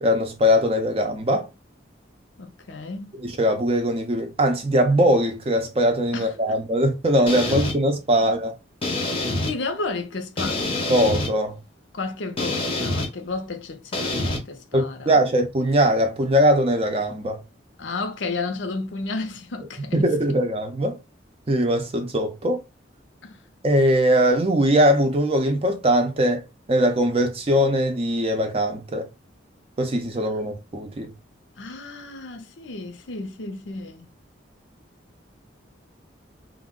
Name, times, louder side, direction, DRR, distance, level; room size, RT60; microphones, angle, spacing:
voice 1, 0.0-1.5 3.2-8.5 10.9-11.6 14.7-17.4 19.9-21.0 21.5-22.6 23.6-26.4 26.7-29.1 29.8-31.1, equal, 30° right, 0.5 m, -21 dB
voice 2, 2.4-3.1 6.1-6.5 7.5-7.6 8.2-8.3 9.4-10.6 11.9-15.2 17.8-20.4 23.2-23.4 31.6-34.0, left 3 dB, 75° left, 0.6 m, -32 dB
sound 1, 7.3-7.8 8.8-9.5 10.4-11.3 12.4-13.1 13.9-14.4, left 2 dB, 30° left, 0.6 m, -26 dB
2.4 x 2.1 x 3.6 m
head